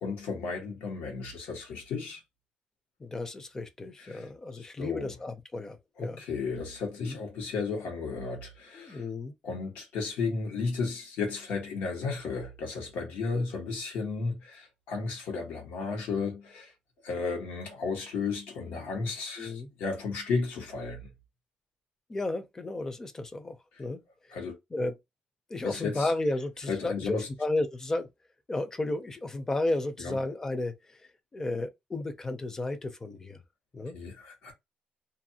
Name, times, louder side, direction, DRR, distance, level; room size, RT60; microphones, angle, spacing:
voice 1, 0.0-2.2 4.0-4.3 4.5-5.1 6.0-9.0 9.4-16.7 17.0-21.0 24.3-24.6 25.6-26.1 26.7-27.3 30.0-30.2 33.9-34.5, left 4 dB, 85° left, 1.3 m, -34 dB
voice 2, 3.0-6.2 7.0-7.2 8.7-9.3 19.4-19.7 22.1-24.0 24.7-24.9 25.5-28.1 28.5-31.0 31.3-33.4 33.7-33.9, left 2 dB, 20° left, 0.5 m, -33 dB
2.5 x 2.4 x 2.7 m
cardioid pair, 135°, 3 cm